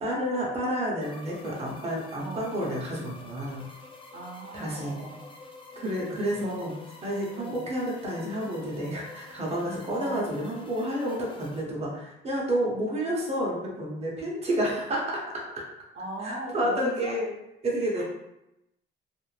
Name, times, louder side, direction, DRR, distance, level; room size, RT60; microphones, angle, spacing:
voice 1, 0.0-3.7 4.5-5.0 5.8-6.7 7.0-15.2 16.2-17.3 17.6-18.0, equal, 30° right, -4 dB, 0.8 m, -30 dB
sound 1, 1.0-11.6, left 3 dB, 25° left, 0.4 m, -48 dB
voice 2, 2.2-2.6 4.1-5.4 6.4-6.7 7.4-7.7 9.9-10.5 14.5-14.6 15.9-17.2 18.0-18.1, right 1 dB, 60° right, -3 dB, 0.8 m, -39 dB
2.4 x 2.0 x 3.1 m, 0.87 s
cardioid pair, 90°, 20 cm